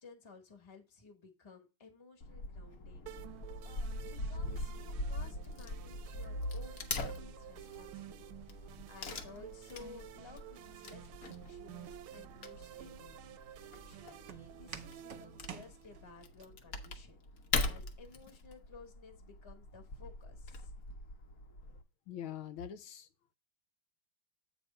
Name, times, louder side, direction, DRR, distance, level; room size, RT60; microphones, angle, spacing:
voice 1, 0.0-8.3 8.6-17.2 17.6-20.7, left 4 dB, 15° left, 1.1 m, -56 dB
Wood / Tearing, 2.2-21.8, left 2 dB, 55° left, 1.2 m, -42 dB
sound 1, 3.1-16.1, right 13 dB, 80° right, 1.4 m, -52 dB
Walk footsteps, 11.8-16.4, right 7 dB, 60° right, 1.6 m, -52 dB
voice 2, 22.1-23.1, left 9 dB, 75° left, 1.4 m, -43 dB
8.2 x 3.5 x 5.4 m
omnidirectional pair, 2.3 m